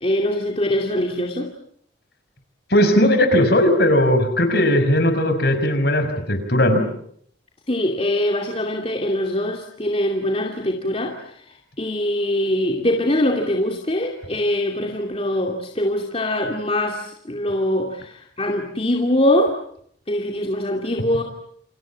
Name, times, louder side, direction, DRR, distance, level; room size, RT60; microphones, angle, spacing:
voice 1, 0.0-1.5 7.7-11.3 11.8-19.6 20.1-21.2, left 1 dB, 30° left, 1 dB, 2.6 m, -23 dB
voice 2, 2.7-6.8, left 1 dB, 55° left, 8 dB, 5.7 m, -17 dB
29.0 x 27.0 x 7.4 m, 0.67 s
head